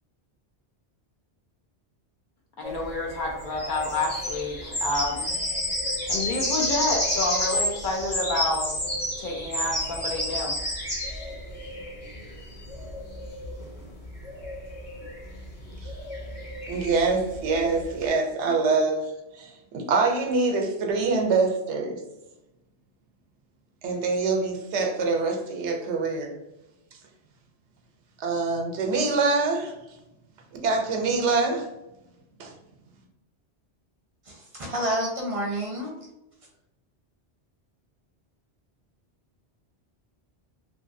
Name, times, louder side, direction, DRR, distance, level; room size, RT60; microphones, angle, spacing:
voice 1, 2.6-5.3 6.1-10.5, left 2 dB, 55° left, -1 dB, 0.6 m, -29 dB
sound 1, 2.6-18.1, left 1 dB, 40° left, 1.1 m, -31 dB
voice 2, 16.7-22.0 23.8-26.4 28.2-29.7 30.5-31.7 32.4-32.5, right 3 dB, 80° right, 3 dB, 0.9 m, -25 dB
voice 3, 34.2-36.0, right 1 dB, 40° right, -2 dB, 0.6 m, -29 dB
2.8 x 2.5 x 2.5 m, 0.92 s
omnidirectional pair, 1.2 m